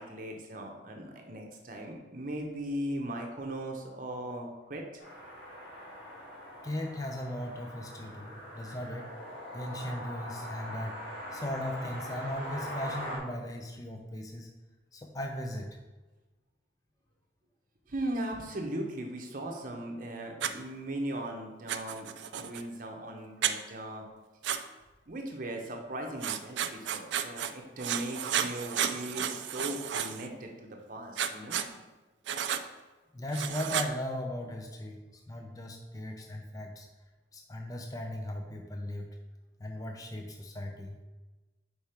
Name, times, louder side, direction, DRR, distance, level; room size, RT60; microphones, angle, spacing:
voice 1, 0.0-4.8 17.9-24.1 25.1-31.6, right 1 dB, 45° right, 2 dB, 0.7 m, -38 dB
sound 1, 5.0-13.2, equal, 60° left, 1.9 m, -42 dB
voice 2, 6.6-9.1 9.5-11.0 11.3-14.5 14.9-15.8 22.4-22.5 33.1-35.0 35.3-36.9 37.3-39.1 39.6-41.0, left 1 dB, 20° left, 2 dB, 0.5 m, -37 dB
Writing, 20.4-20.5 21.7-22.6 23.4-23.6 24.4-24.6 26.2-27.5 27.8-30.3 31.2-31.7 32.3-32.6 33.3-33.9, right 9 dB, 75° right, 0.4 m, -32 dB
5.0 x 4.6 x 4.4 m, 1.2 s
head